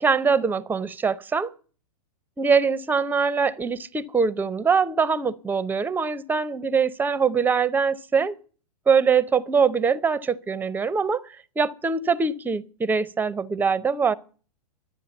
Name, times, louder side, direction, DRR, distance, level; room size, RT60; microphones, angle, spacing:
voice 1, 0.0-1.5 2.4-8.3 8.9-11.2 11.6-14.1, right 5 dB, 10° right, 0.6 m, -23 dB
12.0 x 9.3 x 7.0 m
hypercardioid pair, 110°, 20 cm